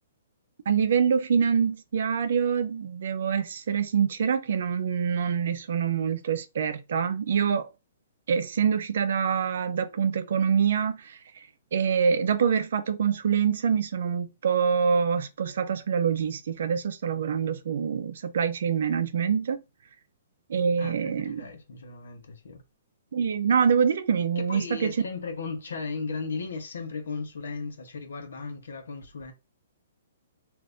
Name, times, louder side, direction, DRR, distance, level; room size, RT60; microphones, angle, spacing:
voice 1, 0.7-7.7 8.3-11.2 11.7-19.6 20.5-21.4 23.1-24.9, right 7 dB, 60° right, 0.5 m, -25 dB
voice 2, 20.8-22.6 24.4-29.3, left 4 dB, 85° left, 0.9 m, -36 dB
2.5 x 2.5 x 3.4 m
hypercardioid pair, 170°, 0 cm